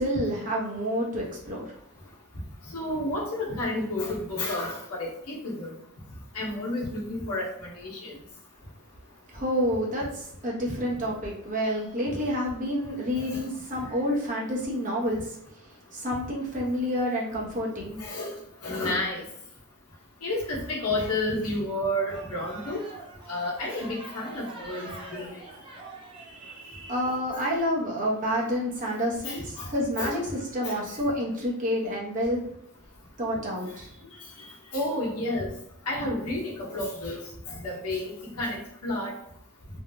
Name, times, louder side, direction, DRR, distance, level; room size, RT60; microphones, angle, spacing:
voice 1, 0.0-1.8 9.3-18.0 25.5-25.6 26.1-32.4 33.2-34.1, equal, 40° right, -3 dB, 1.0 m, -29 dB
voice 2, 2.6-5.7 6.3-8.2 13.2-13.4 13.8-13.9 18.0-19.3 20.2-22.8 23.3-25.4 27.0-27.5 29.2-30.2 30.6-30.8 34.1-35.5 35.8-39.1, left 1 dB, 90° left, -4 dB, 1.0 m, -31 dB
sound 1, 22.1-26.6, right 2 dB, 25° right, 0.6 m, -44 dB
3.3 x 2.3 x 2.7 m, 0.76 s
head